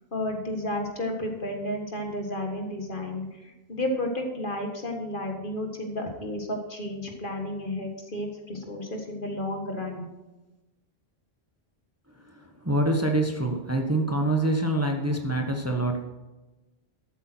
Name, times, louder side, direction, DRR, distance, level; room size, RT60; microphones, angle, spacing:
voice 1, 0.1-10.1, left 1 dB, 55° left, 3 dB, 1.9 m, -32 dB
voice 2, 12.3-16.0, right 1 dB, 15° right, 3 dB, 1.1 m, -26 dB
13.0 x 8.3 x 4.5 m, 1.1 s
omnidirectional pair, 1.1 m